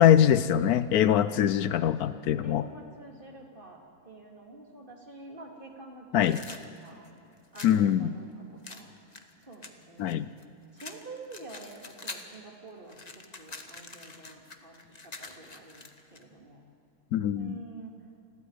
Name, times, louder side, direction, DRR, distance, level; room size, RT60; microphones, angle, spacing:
voice 1, 0.0-2.6 6.1-6.4 7.6-8.1 10.0-10.3 17.1-17.6, left 10 dB, 75° left, 14 dB, 1.1 m, -23 dB
voice 2, 2.4-6.4 6.8-7.1 7.5-8.9 9.4-10.2 10.7-16.6 17.3-18.1, right 2 dB, 35° right, 1 dB, 3.1 m, -48 dB
sound 1, 6.2-7.8 8.6-10.4 10.8-12.4 12.7-16.2, left 3 dB, 30° left, 1.3 m, -45 dB
29.5 x 21.0 x 5.0 m, 2.7 s
omnidirectional pair, 1.6 m